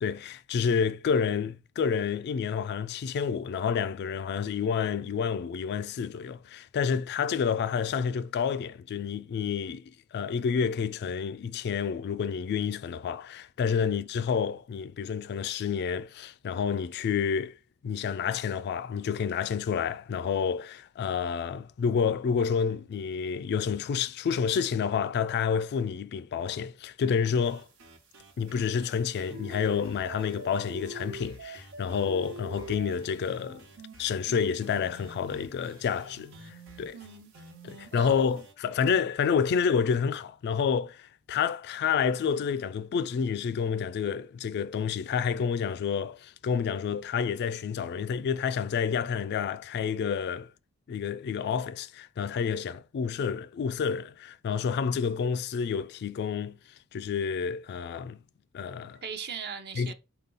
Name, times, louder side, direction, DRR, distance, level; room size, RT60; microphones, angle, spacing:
voice 1, 0.0-17.6 17.8-27.7 28.4-33.7 34.0-37.0 37.6-50.5 50.9-56.6 56.9-58.2 58.5-59.0 59.8-59.9, left 6 dB, 50° left, 0.3 m, -29 dB
sound 1, 27.4-38.5, right 2 dB, 85° right, 1.1 m, -46 dB
voice 2, 36.9-37.3 37.9-38.4 59.0-59.9, right 7 dB, 50° right, 0.6 m, -39 dB
5.2 x 2.3 x 3.9 m
head